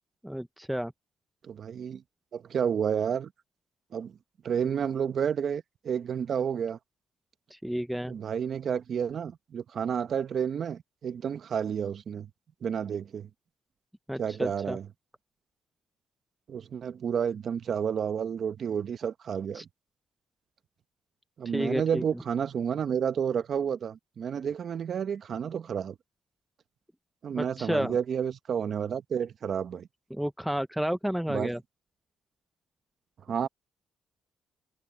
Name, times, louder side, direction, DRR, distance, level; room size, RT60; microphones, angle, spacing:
voice 1, 0.2-0.9 7.5-8.1 14.1-14.8 19.5-19.6 21.5-22.2 27.3-28.0 30.1-31.6, equal, 5° right, 0.7 m, -31 dB
voice 2, 1.4-2.0 2.3-3.3 3.9-4.1 4.4-6.8 8.1-12.3 12.6-13.3 14.2-14.8 16.5-19.6 21.4-25.9 27.2-29.9 31.3-31.5 33.3-33.5, right 7 dB, 55° right, 1.1 m, -30 dB
cardioid pair, 90°, 0 cm